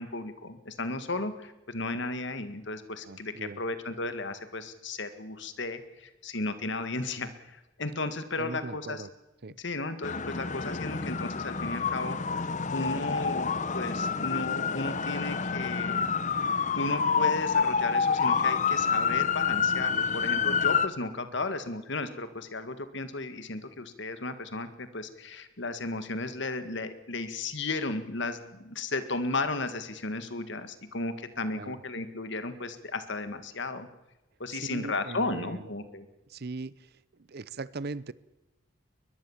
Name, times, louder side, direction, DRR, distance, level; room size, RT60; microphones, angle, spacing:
voice 1, 0.0-9.1 9.6-12.2 12.7-16.1 16.7-33.9 34.4-36.1, left 2 dB, 60° left, 10 dB, 1.9 m, -34 dB
voice 2, 3.0-3.6 8.4-9.1 9.4-9.6 21.3-21.4 31.5-31.8 34.6-35.6 36.3-36.7 37.3-38.1, right 3 dB, 50° right, 19 dB, 0.7 m, -39 dB
sound 1, 10.0-20.9, left 6 dB, 40° left, 0.9 m, -28 dB
21.5 x 21.0 x 7.3 m, 0.99 s
head